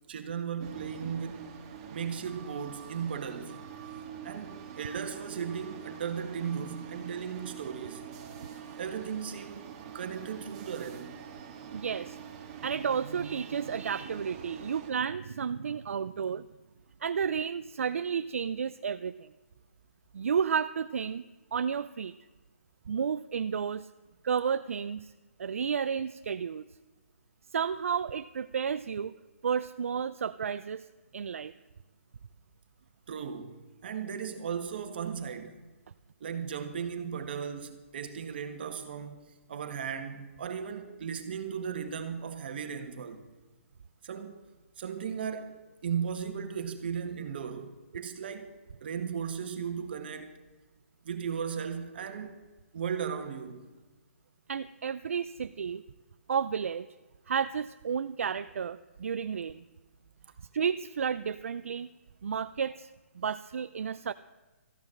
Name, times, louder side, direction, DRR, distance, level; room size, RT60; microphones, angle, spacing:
voice 1, 0.1-1.5 1.9-3.6 4.2-8.0 8.8-9.7 9.9-11.2 33.1-35.6 36.2-39.2 39.5-43.2 44.0-44.4 44.8-45.5 45.8-48.5 48.8-50.3 51.0-52.4 52.7-53.7, right 7 dB, 45° right, 1.6 m, -36 dB
sound 1, 0.6-14.9, right 8 dB, 25° right, 1.6 m, -45 dB
voice 2, 11.7-12.2 12.6-16.5 17.0-19.3 20.1-21.2 21.5-22.1 22.9-23.9 24.2-25.1 25.4-26.6 27.5-29.1 29.4-30.9 31.1-31.5 54.5-55.8 56.3-56.9 57.3-59.6 60.5-61.9 62.2-62.9 63.2-64.1, right 7 dB, 65° right, 0.5 m, -32 dB
14.0 x 10.5 x 6.4 m
hypercardioid pair, 170°, 8 cm